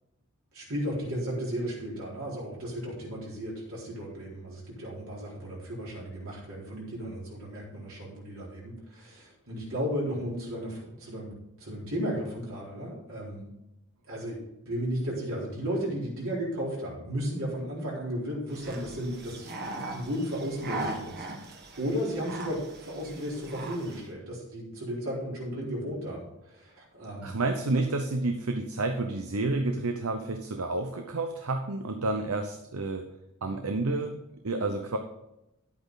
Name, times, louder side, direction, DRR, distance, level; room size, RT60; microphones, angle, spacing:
voice 1, 0.5-11.3 11.6-13.5 14.1-14.4 14.7-27.3 27.7-27.8, equal, 70° right, -5 dB, 4.0 m, -34 dB
sound 1, 18.5-24.1, right 2 dB, 50° right, 1.7 m, -39 dB
voice 2, 27.2-33.1 33.4-35.0, right 2 dB, 85° right, 6 dB, 0.9 m, -30 dB
10.5 x 8.6 x 4.0 m, 0.88 s
head